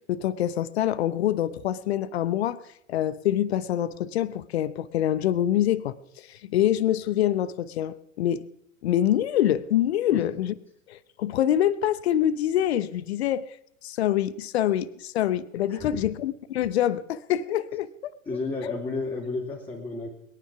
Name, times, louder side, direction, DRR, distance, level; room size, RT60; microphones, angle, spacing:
voice 1, 0.1-2.6 2.9-8.4 8.8-10.5 10.9-13.6 13.8-17.9, left 11 dB, 55° left, 17 dB, 0.8 m, -25 dB
voice 2, 15.7-16.0 18.3-20.1, left 3 dB, 15° left, -3 dB, 3.0 m, -31 dB
21.5 x 9.9 x 6.0 m, 0.76 s
figure-of-eight pair, 90°, 39 cm